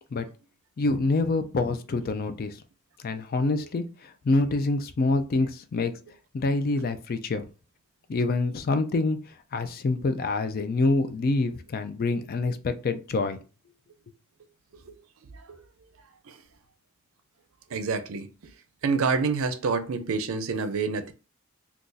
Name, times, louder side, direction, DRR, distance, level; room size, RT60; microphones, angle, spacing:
voice 1, 0.8-2.6 3.0-5.9 6.3-7.4 8.1-9.2 9.5-13.4, left 3 dB, 45° left, 0.4 m, -26 dB
voice 2, 17.7-18.3 18.8-21.1, right 4 dB, 70° right, 0.5 m, -28 dB
2.5 x 2.3 x 3.8 m
head